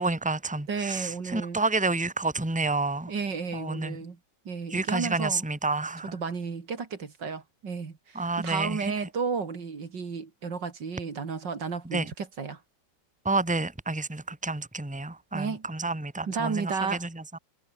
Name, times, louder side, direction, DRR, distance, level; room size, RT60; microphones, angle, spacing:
voice 1, 0.0-3.1 3.5-4.0 4.7-6.2 8.2-8.9 11.9-12.1 13.2-17.2, right 3 dB, 5° right, 2.0 m, -29 dB
voice 2, 0.7-1.6 3.1-4.2 4.4-5.4 6.1-12.6 15.3-15.7 16.2-17.0, right 5 dB, 80° right, 3.3 m, -33 dB
omnidirectional pair, 1.9 m